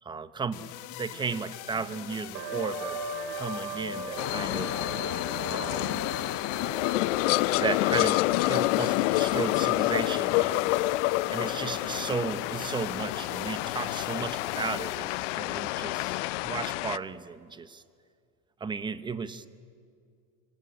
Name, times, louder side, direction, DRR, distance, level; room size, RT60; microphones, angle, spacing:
voice 1, 0.0-0.7 1.0-3.0 3.3-4.7 5.5-6.1 7.6-10.7 11.3-17.8 18.6-19.4, right 5 dB, 10° right, 14 dB, 0.8 m, -34 dB
sound 1, 0.5-16.5, left 15 dB, 50° left, 1.5 m, -44 dB
sound 2, 2.3-13.6, right 3 dB, 50° right, 3.4 m, -40 dB
sound 3, 4.2-17.0, left 19 dB, 70° left, 0.7 m, -28 dB
25.5 x 23.5 x 9.8 m, 2.2 s
supercardioid pair, 145°, 38 cm